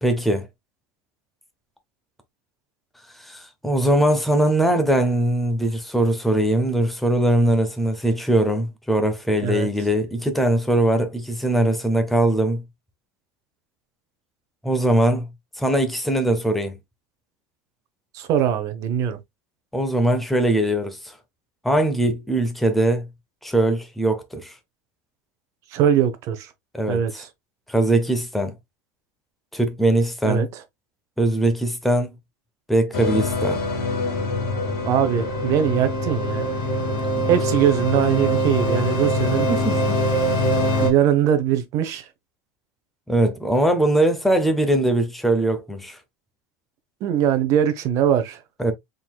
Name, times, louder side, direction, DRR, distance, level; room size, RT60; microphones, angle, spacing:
voice 1, 0.0-0.5 3.2-12.6 14.6-15.3 15.6-16.8 19.7-21.1 21.6-23.1 23.4-24.5 26.7-27.2 27.7-28.5 29.5-30.5 31.2-32.1 32.7-33.6 37.2-37.3 39.5-40.0 43.1-46.0 48.6-48.7, right 1 dB, ahead, 0.6 m, -21 dB
voice 2, 18.1-19.2 25.7-26.5 26.9-27.3 30.2-30.5 34.8-36.5 37.3-39.5 40.8-42.1 47.0-48.4, right 9 dB, 40° right, 0.7 m, -21 dB
sound 1, 32.9-40.9, left 1 dB, 45° left, 2.0 m, -23 dB
4.5 x 3.7 x 2.3 m
cardioid pair, 170°, 8 cm